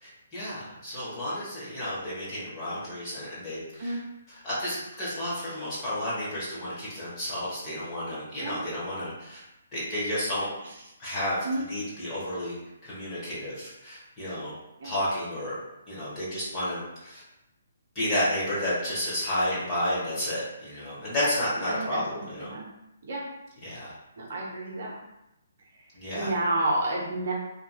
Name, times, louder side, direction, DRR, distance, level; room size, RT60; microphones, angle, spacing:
voice 1, 0.0-4.0 4.3-9.4 9.7-10.5 11.0-12.6 12.8-14.5 14.8-15.6 15.9-17.2 17.9-22.5 23.6-23.9 25.9-26.3, left 1 dB, 15° left, -9 dB, 1.2 m, -31 dB
voice 2, 21.7-22.7 23.0-23.2 24.2-24.9 26.1-27.3, right 2 dB, 50° right, -4 dB, 0.7 m, -30 dB
2.9 x 2.5 x 2.4 m, 0.89 s
figure-of-eight pair, 135°, 0 cm